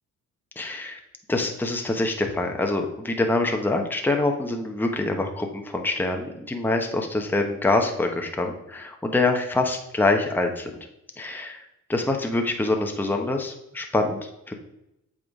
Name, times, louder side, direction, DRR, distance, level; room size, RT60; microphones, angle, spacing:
voice 1, 0.6-1.0 1.3-10.8 11.2-14.5, left 2 dB, 5° left, 3 dB, 0.9 m, -25 dB
7.7 x 3.7 x 4.8 m, 0.84 s
cardioid pair, 90°, 30 cm